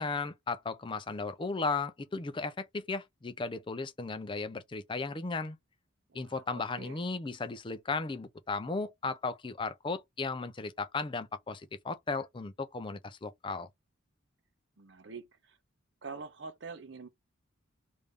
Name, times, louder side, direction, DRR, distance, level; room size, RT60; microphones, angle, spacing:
voice 1, 0.0-5.6 6.1-13.7, left 3 dB, 25° left, 0.4 m, -35 dB
voice 2, 6.1-7.0 14.8-15.6 16.0-17.1, right 4 dB, 60° right, 0.7 m, -46 dB
3.3 x 2.6 x 3.4 m
head